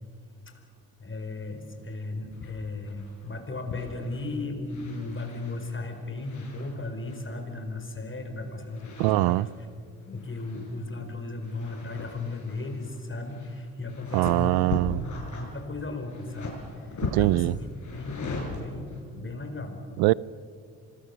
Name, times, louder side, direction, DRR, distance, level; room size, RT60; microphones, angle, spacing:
voice 1, 1.0-9.5 10.1-19.8, left 2 dB, 30° left, 4.9 m, -36 dB
sound 1, 2.3-2.5 2.8-3.3 3.7-4.3 4.7-7.4 8.6-9.7 10.0-11.0 11.3-19.0, left 3 dB, 50° left, 7.4 m, -39 dB
voice 2, 9.0-9.5 14.1-15.0 17.1-17.6 20.0-20.1, right 21 dB, 85° right, 0.5 m, -22 dB
25.5 x 21.5 x 6.9 m
supercardioid pair, 55°, 37 cm